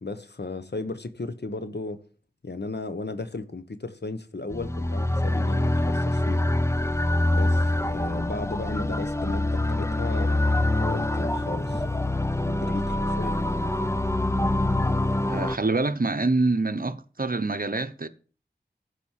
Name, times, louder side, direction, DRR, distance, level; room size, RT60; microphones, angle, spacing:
voice 1, 0.0-2.0 2.4-6.5 7.3-11.8 12.3-13.4, left 3 dB, 70° left, 1.2 m, -35 dB
sound 1, 4.5-15.6, left 1 dB, 15° left, 0.7 m, -25 dB
voice 2, 15.3-18.1, right 3 dB, 55° right, 1.0 m, -26 dB
15.0 x 5.1 x 7.5 m
wide cardioid pair, 45°, 18 cm